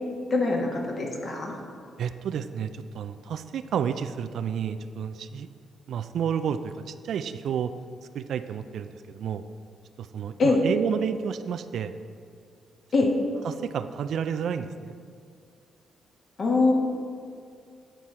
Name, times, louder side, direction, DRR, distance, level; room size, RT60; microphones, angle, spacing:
voice 1, 0.3-1.6 10.4-10.6 12.9-13.1 16.4-16.7, left 3 dB, 50° left, 0 dB, 1.3 m, -23 dB
voice 2, 2.0-5.5 5.9-7.7 8.1-9.4 10.0-12.0 13.4-15.0, right 8 dB, 70° right, 11 dB, 0.3 m, -30 dB
9.0 x 4.2 x 4.6 m, 2.3 s
supercardioid pair, 65°, 0 cm